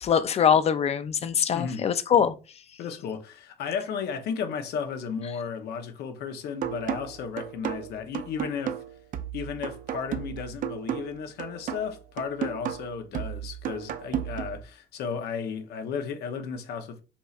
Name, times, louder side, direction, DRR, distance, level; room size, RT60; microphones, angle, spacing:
voice 1, 0.0-2.3, left 8 dB, 40° left, 0.5 m, -23 dB
voice 2, 1.5-1.8 2.8-8.8 9.3-17.0, left 6 dB, 75° left, 0.9 m, -34 dB
sound 1, 6.6-14.6, right 9 dB, 55° right, 0.5 m, -34 dB
5.5 x 3.1 x 2.4 m
cardioid pair, 110°, 17 cm